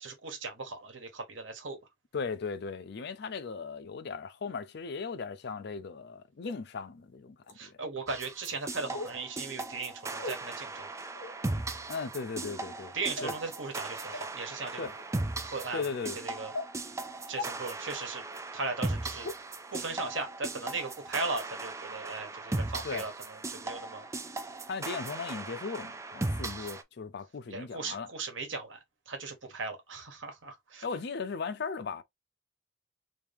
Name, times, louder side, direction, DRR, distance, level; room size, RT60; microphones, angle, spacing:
voice 1, 0.0-1.8 7.6-10.9 12.9-14.9 15.4-15.9 16.2-16.5 17.3-18.2 18.5-19.3 19.7-24.1 26.6-26.7 27.5-28.8 29.1-30.8, right 3 dB, 80° right, 1.3 m, -37 dB
voice 2, 2.1-7.4 7.6-7.8 11.9-13.0 13.2-13.3 14.8-14.9 15.7-16.2 22.8-23.1 24.7-28.1 30.8-32.0, left 5 dB, 60° left, 0.5 m, -37 dB
sound 1, 6.4-6.5 7.4-7.5 8.9-9.2 10.2-10.3 11.1-11.4 12.3-12.6 13.2-13.4 14.1-14.2 14.8-15.0 15.8-15.9 16.5-16.7 17.4-17.5 18.3-18.4 19.2-19.3 20.2-20.3 20.8-20.9, left 3 dB, 85° left, 1.1 m, -38 dB
sound 2, 8.1-26.8, right 2 dB, 15° right, 0.4 m, -38 dB
3.1 x 2.8 x 3.4 m
head